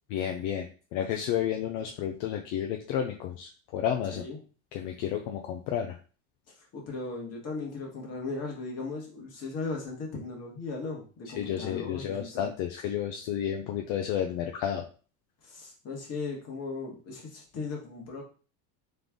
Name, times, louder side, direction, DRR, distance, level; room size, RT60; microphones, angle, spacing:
voice 1, 0.1-4.2 4.7-6.0 11.4-14.9, left 9 dB, 60° left, 3 dB, 0.7 m, -31 dB
voice 2, 6.7-12.5 15.4-18.2, left 3 dB, 35° left, 0 dB, 1.6 m, -37 dB
3.9 x 3.4 x 3.6 m, 0.37 s
cardioid pair, 150°, 44 cm